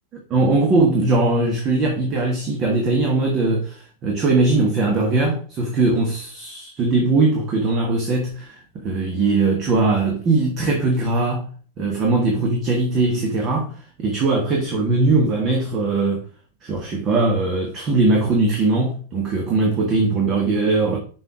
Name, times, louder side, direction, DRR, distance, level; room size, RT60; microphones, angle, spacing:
voice 1, 0.3-11.5 11.8-13.7 14.0-16.2 16.6-21.0, right 3 dB, 30° right, 1.5 m, -20 dB
6.0 x 4.5 x 4.8 m
figure-of-eight pair, 90°, 0 cm